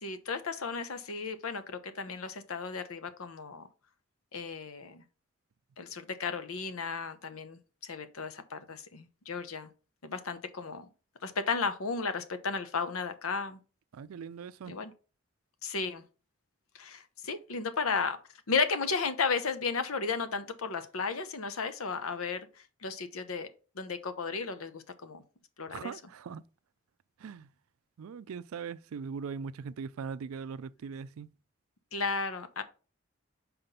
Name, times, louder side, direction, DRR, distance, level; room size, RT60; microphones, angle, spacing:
voice 1, 0.0-3.7 4.3-5.0 5.8-9.7 10.0-10.9 11.2-13.6 14.7-14.9 15.6-16.0 16.7-18.2 18.5-22.4 22.8-23.5 23.8-25.2 25.6-25.9 31.9-32.6, left 4 dB, 90° left, 0.9 m, -34 dB
voice 2, 13.9-14.8 25.7-26.4 27.2-27.5 28.0-31.3, right 6 dB, 85° right, 0.4 m, -40 dB
5.8 x 4.3 x 5.2 m
head